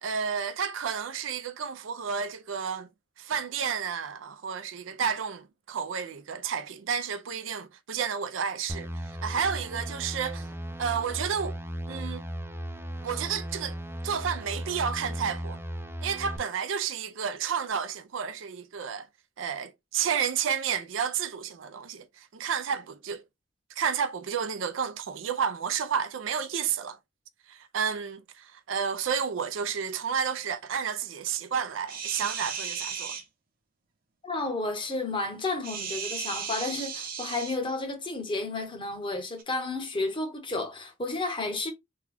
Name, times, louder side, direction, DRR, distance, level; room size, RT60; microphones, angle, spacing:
voice 1, 0.0-2.9 3.2-10.5 10.8-11.6 11.9-12.2 13.0-13.8 14.0-15.6 16.0-19.1 19.4-23.2 23.8-27.0 27.5-33.2, right 7 dB, 85° right, 0.5 m, -31 dB
sound 1, 8.7-16.4, equal, 10° right, 0.4 m, -36 dB
sound 2, 31.9-33.2 35.6-37.6 39.4-39.5, right 7 dB, 50° right, 0.8 m, -35 dB
voice 2, 34.2-41.7, left 2 dB, 25° left, 1.0 m, -32 dB
3.6 x 2.3 x 3.3 m
head